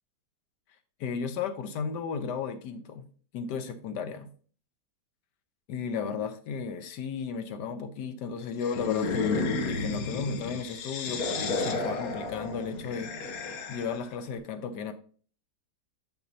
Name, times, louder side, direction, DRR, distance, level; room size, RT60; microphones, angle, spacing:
voice 1, 1.0-3.1 3.3-4.3 5.7-14.9, left 6 dB, 90° left, 9 dB, 1.4 m, -34 dB
sound 1, 8.6-14.1, left 3 dB, 65° left, 1.2 m, -32 dB
6.8 x 6.3 x 2.7 m, 0.43 s
omnidirectional pair, 1.8 m